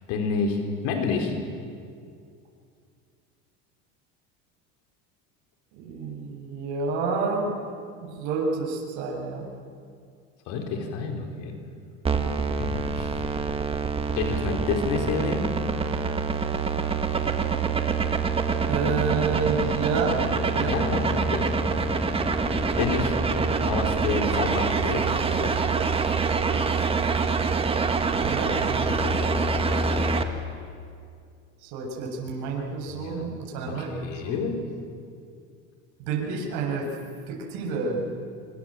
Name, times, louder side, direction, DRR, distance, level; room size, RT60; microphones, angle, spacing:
voice 1, 0.1-1.4 10.5-11.6 12.6-13.1 14.1-15.5 20.6-21.5 22.8-23.2 23.6-25.5 28.9-29.2 32.9-33.2 33.7-34.6, left 5 dB, 65° left, 3 dB, 4.4 m, -29 dB
voice 2, 5.7-7.5 8.0-9.4 18.7-20.2 20.5-20.8 28.2-28.6 31.6-34.4 36.0-36.9 37.3-38.0, right 4 dB, 70° right, -1 dB, 7.4 m, -29 dB
sound 1, 12.1-30.2, right 4 dB, 15° right, 1.6 m, -25 dB
26.5 x 25.0 x 7.6 m, 2.3 s
cardioid pair, 140°, 32 cm